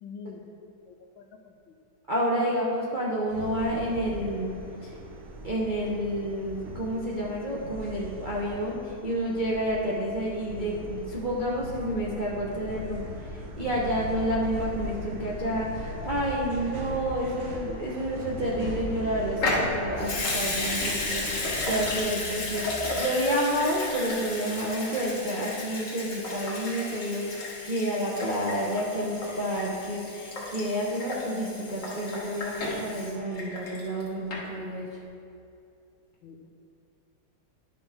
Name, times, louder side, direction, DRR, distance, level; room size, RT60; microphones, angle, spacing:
voice 1, 0.0-1.5 2.3-2.4 36.2-36.5, left 6 dB, 75° left, 6 dB, 1.3 m, -45 dB
voice 2, 2.1-4.9 5.4-34.9, equal, 45° right, -6 dB, 0.6 m, -30 dB
sound 1, 3.3-22.0, equal, 85° right, 1.9 m, -39 dB
Water tap faucet / Sink (filling or washing) / Liquid, 19.4-34.0 34.3-34.4, left 2 dB, 40° left, 1.7 m, -33 dB
11.5 x 6.1 x 3.6 m, 2.6 s
omnidirectional pair, 2.3 m